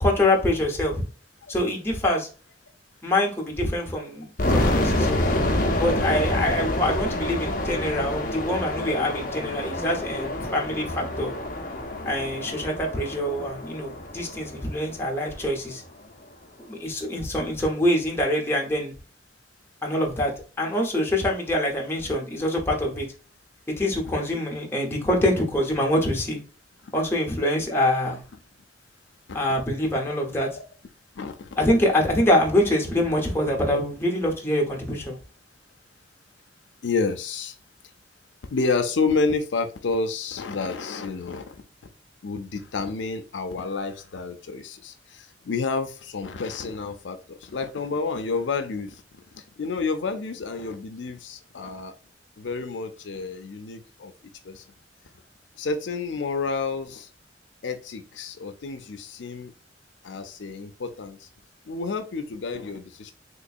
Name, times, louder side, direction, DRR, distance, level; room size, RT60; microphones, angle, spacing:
voice 1, 0.0-1.0 1.5-2.3 3.0-5.2 5.8-11.3 12.0-15.8 16.7-18.9 19.8-20.3 20.6-23.1 23.8-26.4 26.9-28.2 29.3-30.5 31.6-35.2, left 1 dB, 15° left, -1 dB, 1.0 m, -25 dB
sound 1, 4.4-15.3, left 1 dB, 50° left, 0.7 m, -27 dB
voice 2, 31.2-31.5 36.8-37.5 38.5-41.4 42.2-49.0 49.3-51.9 52.4-54.1 54.4-54.6 55.6-57.1 57.6-59.5 60.0-61.3 61.7-63.1, left 4 dB, 90° left, 7 dB, 0.5 m, -29 dB
3.8 x 3.0 x 2.5 m, 0.36 s
head